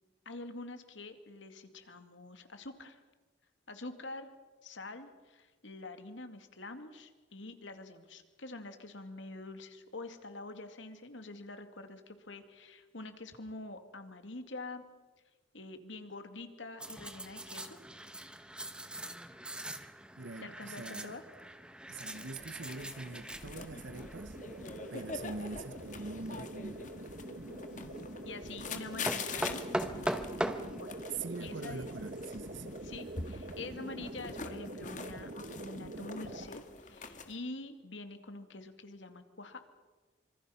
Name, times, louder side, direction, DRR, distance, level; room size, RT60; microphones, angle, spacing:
voice 1, 0.3-3.0 3.7-4.3 4.6-14.8 15.5-17.8 20.4-21.2 28.2-29.6 30.7-30.9 31.4-31.9 32.8-35.3 35.6-39.6, left 2 dB, 85° left, 2.3 m, -46 dB
sound 1, 16.8-34.1, right 1 dB, 5° right, 1.2 m, -43 dB
voice 2, 20.2-21.2 21.9-24.4 24.9-27.2 31.2-32.8, right 3 dB, 85° right, 1.0 m, -44 dB
sound 2, 22.1-37.4, left 4 dB, 40° left, 1.8 m, -45 dB
sound 3, 23.3-36.5, right 1 dB, 50° right, 1.3 m, -45 dB
26.0 x 25.0 x 5.7 m
head